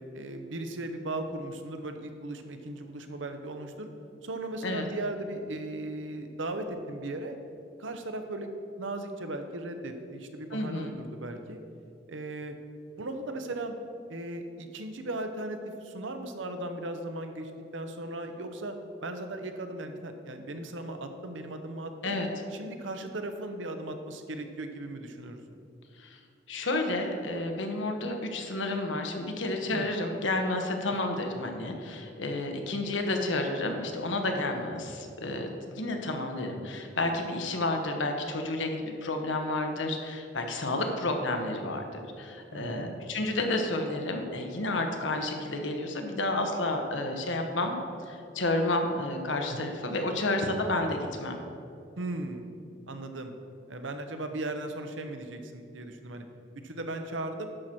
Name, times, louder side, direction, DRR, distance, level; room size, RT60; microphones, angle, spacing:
voice 1, 0.1-3.9 4.2-7.4 7.8-8.5 8.8-11.6 12.1-12.6 13.0-13.8 14.1-18.7 19.0-22.2 22.5-25.6 29.7-29.9 42.5-43.0 49.5-49.7 52.0-52.5 52.9-53.3 53.7-56.2 56.6-57.5, right 2 dB, 85° right, 6 dB, 0.9 m, -37 dB
voice 2, 10.5-10.9 22.0-22.3 26.0-26.2 26.5-47.7 48.1-51.4, left 2 dB, 80° left, 4 dB, 1.1 m, -31 dB
11.5 x 4.4 x 6.1 m, 2.5 s
head